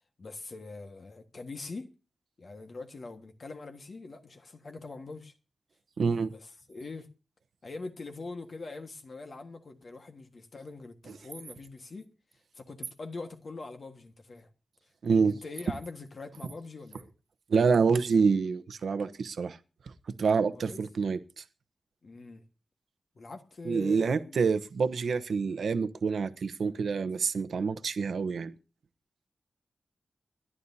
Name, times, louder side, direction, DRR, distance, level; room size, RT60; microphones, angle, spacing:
voice 1, 0.2-1.9 2.4-5.3 6.3-7.1 7.6-12.1 12.5-14.5 15.2-17.1 20.5-20.8 22.0-22.4 23.1-24.5, left 3 dB, 50° left, 1.6 m, -43 dB
voice 2, 6.0-6.3 15.0-15.4 17.5-19.6 20.2-21.4 23.6-28.5, right 5 dB, 75° right, 1.0 m, -27 dB
27.5 x 11.5 x 2.8 m
wide cardioid pair, 125°, 0 cm